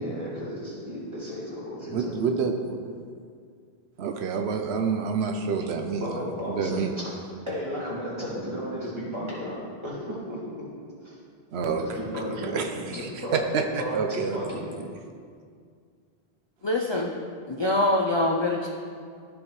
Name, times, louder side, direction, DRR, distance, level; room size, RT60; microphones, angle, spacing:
voice 1, 0.0-2.2 6.0-7.0 7.5-9.6 9.8-10.6 11.0-11.2 11.8-12.6 12.9-13.4 13.8-14.7, equal, 25° right, -8 dB, 2.5 m, -34 dB
voice 2, 1.9-2.9 4.0-6.9 11.5-12.0 12.3-14.4, right 5 dB, 80° right, 4 dB, 0.9 m, -28 dB
voice 3, 16.6-17.1 17.5-18.7, left 1 dB, 35° left, -1 dB, 0.5 m, -24 dB
13.5 x 5.3 x 3.1 m, 2.2 s
omnidirectional pair, 1.1 m